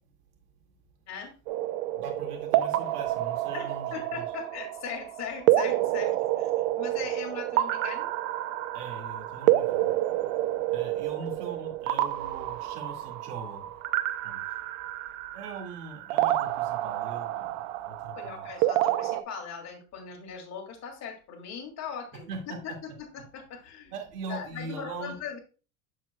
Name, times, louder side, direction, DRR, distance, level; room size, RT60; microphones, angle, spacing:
sound 1, 1.5-19.2, right 14 dB, 55° right, 0.6 m, -29 dB
voice 1, 1.9-4.3 8.7-9.9 10.7-13.7 14.2-14.4 15.3-17.6 17.8-18.5 22.3-22.4 23.9-25.2, right 4 dB, 85° right, 2 dB, 2.1 m, -40 dB
voice 2, 3.5-6.5 6.8-8.1 18.2-23.9 24.3-25.4, left 6 dB, 35° left, 1 dB, 2.3 m, -39 dB
7.4 x 7.4 x 2.2 m, 0.35 s
supercardioid pair, 125°, 45 cm